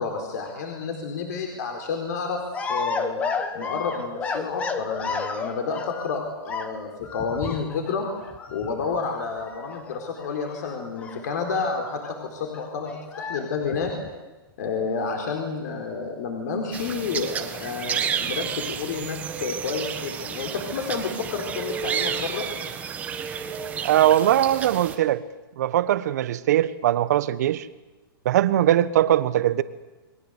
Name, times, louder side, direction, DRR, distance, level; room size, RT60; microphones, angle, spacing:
voice 1, 0.0-2.4 2.7-3.2 3.5-8.1 8.5-13.9 14.6-22.5, left 5 dB, 45° left, 3 dB, 4.5 m, -30 dB
sound 1, 2.5-6.2 6.5-11.8 12.0-12.2 12.4-14.3, left 5 dB, 10° left, 1.2 m, -33 dB
sound 2, 16.7-25.0, right 8 dB, 10° right, 1.4 m, -31 dB
voice 2, 23.8-25.2 25.6-27.7 28.2-29.6, right 12 dB, 45° right, 14 dB, 1.2 m, -20 dB
30.0 x 22.0 x 8.3 m, 1.1 s
hypercardioid pair, 170°, 13 cm